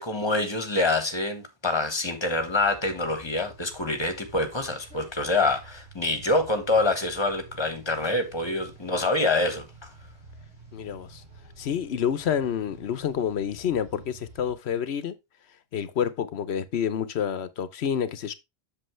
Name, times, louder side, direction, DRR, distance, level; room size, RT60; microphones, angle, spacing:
voice 1, 0.0-9.9, left 2 dB, 25° left, 1.4 m, -26 dB
sound 1, 2.3-14.5, right 3 dB, 75° right, 4.1 m, -49 dB
voice 2, 10.7-11.2 11.6-15.1 15.7-18.3, left 8 dB, 80° left, 1.0 m, -28 dB
7.8 x 6.9 x 3.2 m
omnidirectional pair, 1.1 m